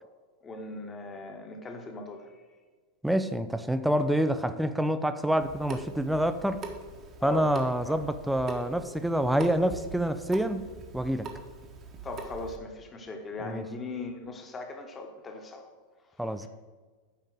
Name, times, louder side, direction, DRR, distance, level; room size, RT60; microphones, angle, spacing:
voice 1, 0.4-2.3 7.2-7.5 7.9-8.0 12.0-15.7 16.4-16.5, left 3 dB, 20° left, 4 dB, 1.3 m, -39 dB
voice 2, 3.0-6.7 7.2-10.7 10.9-11.3 13.4-13.7 16.2-16.5, right 1 dB, 5° right, 11 dB, 0.6 m, -27 dB
Water tap faucet / Sink (filling or washing) / Drip, 5.4-12.6, right 3 dB, 30° right, 1.4 m, -43 dB
9.2 x 5.2 x 7.4 m, 1.4 s
figure-of-eight pair, 90°, 0 cm